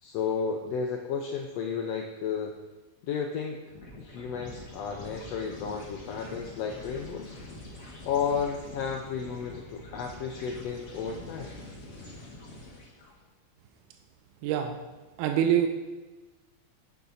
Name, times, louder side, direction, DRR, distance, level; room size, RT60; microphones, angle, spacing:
voice 1, 0.0-2.6 3.0-3.6 4.0-7.4 8.0-11.5, left 6 dB, 80° left, 2 dB, 1.4 m, -33 dB
sound 1, 3.7-13.1, left 1 dB, 35° left, 1.4 m, -45 dB
voice 2, 14.4-14.8 15.2-15.7, right 10 dB, 90° right, 5 dB, 2.1 m, -24 dB
8.5 x 7.3 x 4.1 m, 1.2 s
omnidirectional pair, 3.6 m